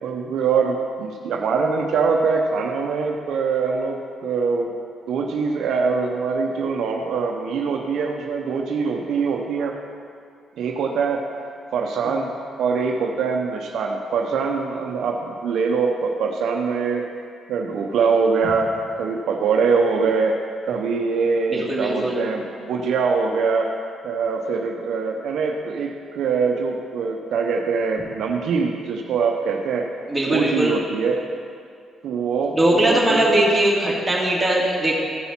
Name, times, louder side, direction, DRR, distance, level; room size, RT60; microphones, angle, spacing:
voice 1, 0.0-4.8 5.1-9.7 10.6-11.3 11.7-12.3 12.6-17.1 17.5-23.7 24.0-29.9 30.3-31.2 32.0-33.4, right 5 dB, 75° right, 2 dB, 0.7 m, -23 dB
voice 2, 21.5-22.2 30.1-30.7 32.5-34.9, right 1 dB, 10° right, -6 dB, 2.8 m, -20 dB
14.0 x 5.6 x 4.4 m, 2.2 s
cardioid pair, 90°, 0 cm